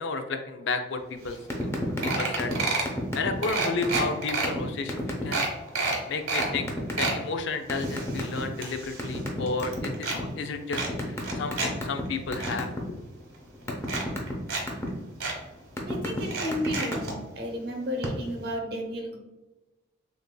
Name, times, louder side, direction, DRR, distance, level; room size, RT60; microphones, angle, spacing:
voice 1, 0.0-1.7 2.0-2.5 3.1-5.4 5.7-6.7 7.0-12.7, left 4 dB, 65° left, 6 dB, 0.4 m, -32 dB
sound 1, 1.3-1.4 1.6-1.8 2.0-2.9 3.4-4.5 4.9-5.0 5.3-6.5 6.8-7.2 7.7-9.2 9.5-10.2 10.7-11.7 12.0-12.5 13.3-13.4 13.8-14.6 14.9-15.0 15.2-15.4 16.2-17.1 18.0-18.1 18.4-18.5, right 3 dB, 85° right, 1.3 m, -30 dB
sound 2, 1.5-2.1 2.4-2.6 2.9-3.5 3.8-4.0 4.4-4.6 4.9-5.2 6.4-7.1 7.7-8.6 9.0-10.2 10.7-12.0 12.3-12.8 13.2-14.9 15.5-16.2 16.5-16.9, left 1 dB, 15° left, 0.7 m, -30 dB
voice 2, 15.9-19.2, equal, 50° right, 2 dB, 0.8 m, -33 dB
6.6 x 2.6 x 2.2 m, 1.1 s
head